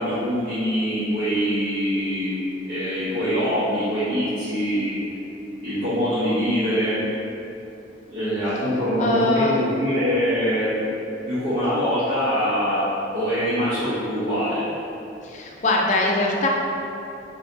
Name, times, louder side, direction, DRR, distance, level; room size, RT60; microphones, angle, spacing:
voice 1, 0.0-2.4 2.6-4.9 5.6-7.0 8.1-10.7 11.3-12.9 13.1-14.6, equal, 80° right, -17 dB, 1.4 m, -23 dB
voice 2, 9.0-9.6 15.2-16.5, left 2 dB, 40° left, -1 dB, 0.4 m, -22 dB
3.8 x 2.8 x 3.3 m, 2.8 s
head